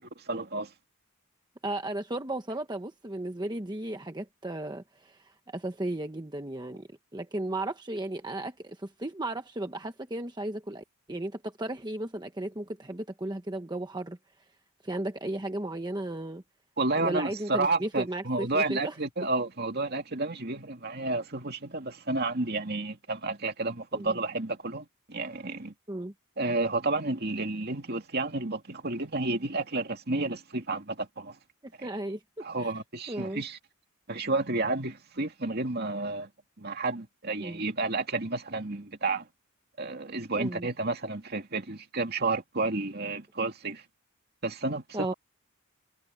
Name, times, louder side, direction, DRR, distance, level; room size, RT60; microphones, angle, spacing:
voice 1, 0.2-0.7 16.8-25.7 26.4-31.4 31.8-31.9 32.4-33.6 34.1-36.3 36.6-39.3 39.8-43.8 44.4-45.1, right 3 dB, 45° right, 2.6 m, -31 dB
voice 2, 1.6-14.2 14.8-16.4 17.0-19.0 23.9-24.2 25.9-26.1 31.6-32.7 33.1-33.4 37.4-37.6 40.4-40.7 44.9-45.1, right 1 dB, 20° right, 1.0 m, -35 dB
head